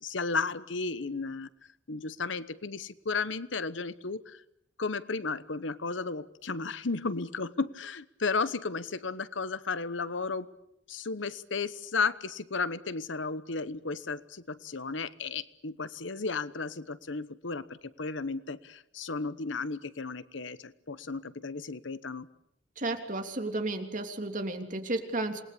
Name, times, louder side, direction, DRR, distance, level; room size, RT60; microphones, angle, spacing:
voice 1, 0.0-1.5 1.9-4.4 4.8-10.5 10.9-22.3, left 4 dB, 75° left, 15 dB, 1.1 m, -34 dB
voice 2, 22.8-25.4, right 2 dB, 40° right, 5 dB, 3.2 m, -33 dB
27.5 x 20.5 x 8.6 m, 0.78 s
head